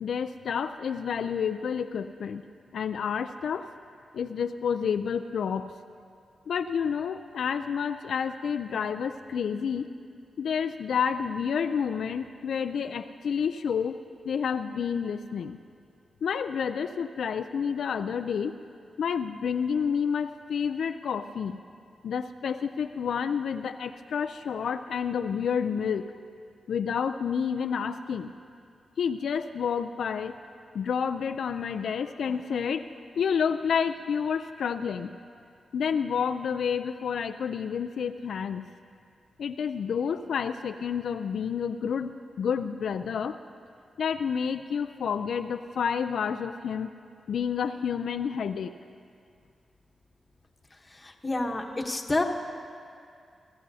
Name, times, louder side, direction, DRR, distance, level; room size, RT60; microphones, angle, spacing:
voice 1, 0.0-2.4 2.7-3.7 4.1-5.7 6.5-9.9 10.4-14.0 14.2-15.6 16.2-18.5 19.0-21.6 22.0-26.0 26.7-28.3 29.0-30.3 30.7-32.8 33.2-35.1 35.7-38.7 39.4-43.4 44.0-46.9 47.3-48.7, left 7 dB, 80° left, 8 dB, 0.4 m, -29 dB
voice 2, 50.7-52.2, left 2 dB, 20° left, 2 dB, 1.1 m, -29 dB
23.0 x 14.5 x 2.8 m, 2.3 s
wide cardioid pair, 115°, 0 cm